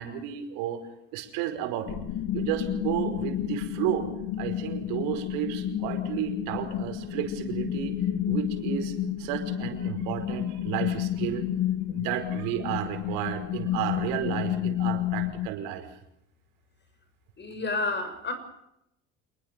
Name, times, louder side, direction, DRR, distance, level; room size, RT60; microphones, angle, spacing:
voice 1, 0.0-2.0 2.3-4.1 4.4-8.0 8.3-11.5 11.9-15.9, right 10 dB, 80° right, 6 dB, 5.2 m, -32 dB
sound 1, 1.9-15.5, left 10 dB, 65° left, 2.8 m, -31 dB
voice 2, 17.4-18.3, left 3 dB, 35° left, 8 dB, 7.3 m, -30 dB
27.5 x 20.0 x 6.9 m, 0.82 s
supercardioid pair, 95°, 32 cm